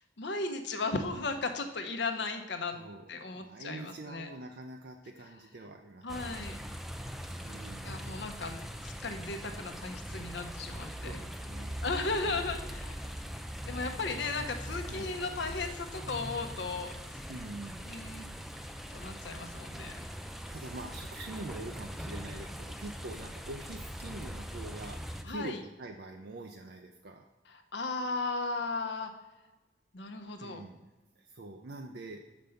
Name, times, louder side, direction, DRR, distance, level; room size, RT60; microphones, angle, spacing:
voice 1, 0.2-2.8 3.1-4.3 6.0-6.6 7.4-7.6 7.8-11.2 11.8-13.1 13.7-17.3 17.9-18.3 18.9-19.9 25.2-25.6 27.5-29.1 29.9-30.6, left 3 dB, 65° left, 6 dB, 0.8 m, -36 dB
voice 2, 2.7-6.3 7.4-8.1 10.8-11.9 12.3-12.4 14.9-15.1 17.3-18.0 20.5-25.0 25.3-27.3 30.4-32.2, right 2 dB, 55° right, 4 dB, 0.5 m, -45 dB
sound 1, 6.1-25.2, equal, ahead, 0.3 m, -41 dB
6.5 x 5.2 x 5.6 m, 1.1 s
head